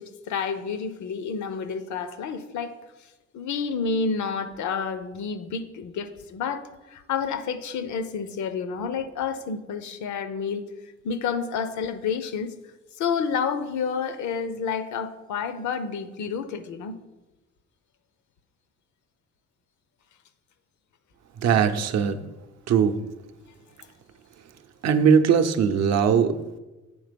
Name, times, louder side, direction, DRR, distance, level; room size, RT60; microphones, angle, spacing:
voice 1, 0.0-2.8 3.3-10.7 11.0-12.5 13.0-16.9, left 6 dB, 70° left, 0.7 m, -29 dB
voice 2, 21.4-22.2 22.7-23.0 24.8-26.3, right 7 dB, 60° right, 0.6 m, -20 dB
8.7 x 3.7 x 5.1 m
cardioid pair, 90°, 30 cm